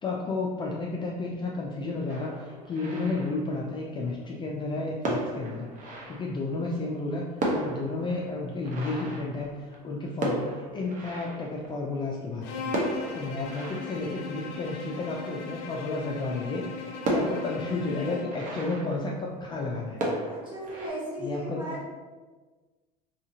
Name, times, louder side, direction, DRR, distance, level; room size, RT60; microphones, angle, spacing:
voice 1, 0.0-12.8 13.1-20.0 21.2-21.6, left 3 dB, 25° left, -2 dB, 0.4 m, -32 dB
sound 1, 2.1-3.9 4.7-4.8 5.0-6.8 7.1-7.2 7.4-12.1 12.7-15.3 15.8-15.9 16.3-16.4 17.0-19.7 20.0-20.9, right 1 dB, 45° right, 0.8 m, -34 dB
Bowed string instrument, 12.4-18.4, left 4 dB, 75° left, 0.5 m, -38 dB
voice 2, 20.3-21.9, equal, 25° right, -7 dB, 1.5 m, -36 dB
2.8 x 2.6 x 2.7 m, 1.3 s
supercardioid pair, 100°, 19 cm